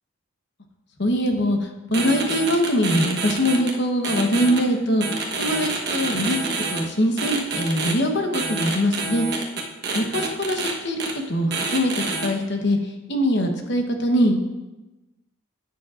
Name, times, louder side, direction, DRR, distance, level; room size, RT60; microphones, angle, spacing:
voice 1, 1.0-5.0 5.4-6.4 6.7-9.3 9.9-14.4, equal, 55° left, 4 dB, 1.0 m, -22 dB
sound 1, 1.9-3.7 4.0-4.6 5.0-6.8 7.2-7.9 8.3-10.7 11.0-11.1 11.5-12.3, right 4 dB, 50° right, 1.2 m, -27 dB
11.0 x 9.2 x 2.5 m, 1.1 s
head